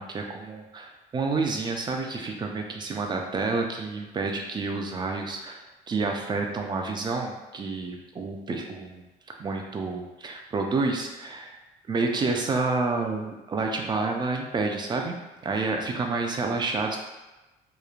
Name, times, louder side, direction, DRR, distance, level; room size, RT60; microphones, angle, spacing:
voice 1, 0.0-5.6 5.9-9.0 9.4-11.6 11.9-15.2 15.4-17.0, right 3 dB, 25° right, 2 dB, 0.4 m, -29 dB
3.0 x 2.1 x 2.4 m, 1.1 s
cardioid pair, 110°, 17 cm